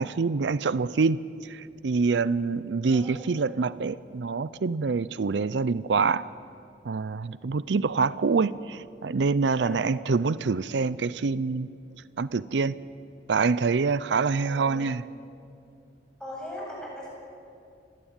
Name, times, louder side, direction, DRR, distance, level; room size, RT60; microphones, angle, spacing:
voice 1, 0.0-6.3 6.8-11.7 12.2-12.8 13.3-15.1, right 4 dB, 80° right, 0.5 m, -26 dB
voice 2, 2.8-3.2 9.5-9.8 14.4-14.8 16.2-17.1, equal, 5° left, 7.6 m, -39 dB
28.0 x 17.0 x 8.9 m
head